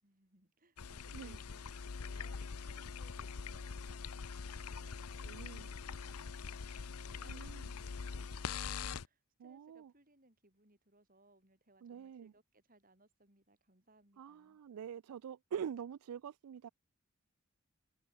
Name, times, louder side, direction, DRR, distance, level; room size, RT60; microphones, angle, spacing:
voice 1, 0.0-14.6, right 2 dB, 40° right, 4.9 m, -68 dB
sound 1, 0.8-9.1, left 5 dB, 85° left, 0.7 m, -43 dB
voice 2, 5.2-5.7 7.3-7.7 9.4-9.9 11.8-12.3 14.2-16.7, right 8 dB, 85° right, 0.3 m, -45 dB
head